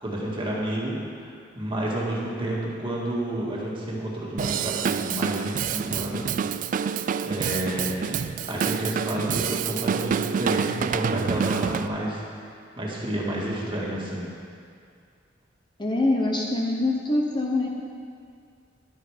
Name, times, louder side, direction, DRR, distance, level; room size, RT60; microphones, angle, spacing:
voice 1, 0.0-1.0 1.5-6.3 7.2-8.2 8.5-12.2 12.8-14.3, right 1 dB, 25° right, -4 dB, 2.0 m, -30 dB
Drum kit / Drum, 4.4-11.9, right 7 dB, 45° right, 0.3 m, -27 dB
voice 2, 15.8-17.8, left 2 dB, 25° left, 0 dB, 0.8 m, -24 dB
11.5 x 8.9 x 5.0 m, 2.3 s
head